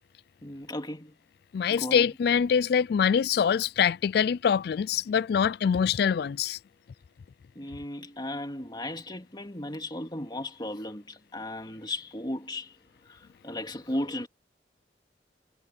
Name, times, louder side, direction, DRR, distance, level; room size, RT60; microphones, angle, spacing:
voice 1, 0.4-1.1 1.7-2.1 7.5-12.8 13.1-14.3, left 1 dB, 25° left, 2.7 m, -36 dB
voice 2, 1.5-6.6, left 7 dB, 60° left, 0.3 m, -24 dB
head